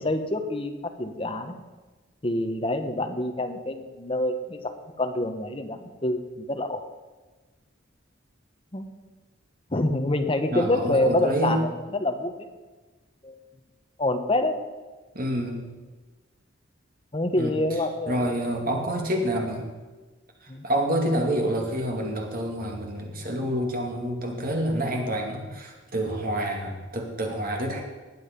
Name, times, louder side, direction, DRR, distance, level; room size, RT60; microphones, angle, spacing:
voice 1, 0.0-1.5 2.2-4.7 5.0-6.8 8.7-8.9 9.7-12.5 13.2-13.4 14.0-14.6 17.1-18.4 20.5-20.6, left 1 dB, 30° left, 6 dB, 1.1 m, -27 dB
voice 2, 10.5-11.6 15.1-15.6 17.4-17.6 18.1-19.7 20.4-27.8, right 1 dB, 50° right, 2 dB, 2.4 m, -28 dB
20.0 x 7.9 x 5.3 m, 1.3 s
head